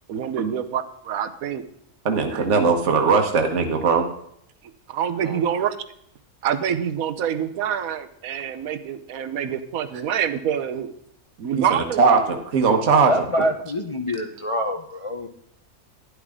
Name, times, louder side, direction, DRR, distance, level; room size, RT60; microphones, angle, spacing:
voice 1, 0.1-1.7 2.3-2.5 4.6-5.8 6.4-10.9 11.4-12.0, right 8 dB, 75° right, 11 dB, 1.2 m, -26 dB
voice 2, 2.0-4.0 11.7-13.2, right 5 dB, 55° right, 4 dB, 1.5 m, -19 dB
voice 3, 13.1-15.3, equal, 30° left, 4 dB, 0.6 m, -26 dB
11.5 x 10.5 x 3.7 m, 0.71 s
omnidirectional pair, 1.5 m